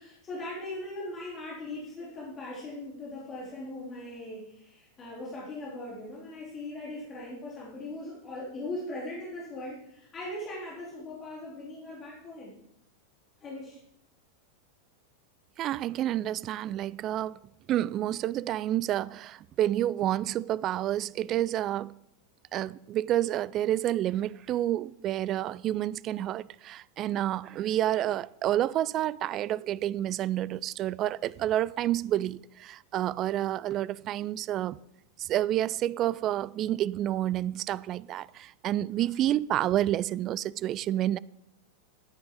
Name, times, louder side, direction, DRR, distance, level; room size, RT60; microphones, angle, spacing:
voice 1, 0.0-12.5 13.4-13.8, left 1 dB, 25° left, 3.1 m, -39 dB
voice 2, 15.6-17.4 17.7-21.9 22.5-34.8 35.2-41.2, right 12 dB, 35° right, 0.3 m, -29 dB
13.5 x 9.5 x 3.6 m
figure-of-eight pair, 90°, 0 cm